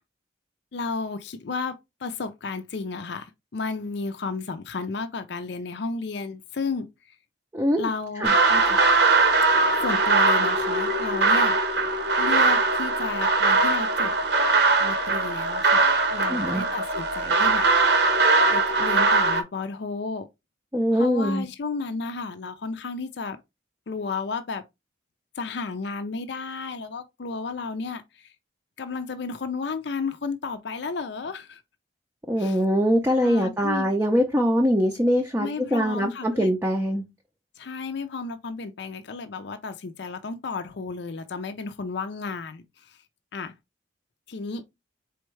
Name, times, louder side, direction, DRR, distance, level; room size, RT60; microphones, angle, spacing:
voice 1, 0.7-1.8 2.0-6.9 7.8-8.8 9.8-11.6 12.2-14.1 14.8-17.7 17.9-18.1 18.5-20.3 20.9-23.4 23.9-24.6 25.4-28.3 28.8-31.6 32.4-32.6 33.2-33.9 35.4-36.5 37.6-43.0 43.3-43.5 44.3-44.6, left 4 dB, 60° left, 0.5 m, -33 dB
voice 2, 7.5-7.9 8.2-8.3 16.3-16.6 20.7-21.5 32.3-37.0, equal, 10° right, 0.5 m, -23 dB
sound 1, 8.2-19.4, right 3 dB, 60° right, 0.9 m, -21 dB
4.5 x 3.4 x 3.1 m
head